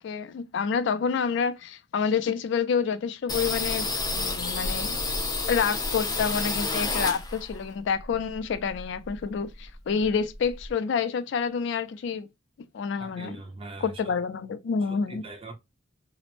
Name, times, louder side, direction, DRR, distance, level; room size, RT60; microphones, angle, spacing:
voice 1, 0.0-5.0 5.5-12.3 12.7-13.4 13.8-15.3, left 6 dB, 65° left, 0.3 m, -28 dB
sound 1, 3.3-7.6 8.0-9.3 9.6-9.7 10.0-10.7, left 3 dB, 20° left, 0.6 m, -30 dB
voice 2, 13.0-13.9 14.9-15.5, right 2 dB, 30° right, 0.7 m, -41 dB
3.0 x 2.0 x 2.4 m
head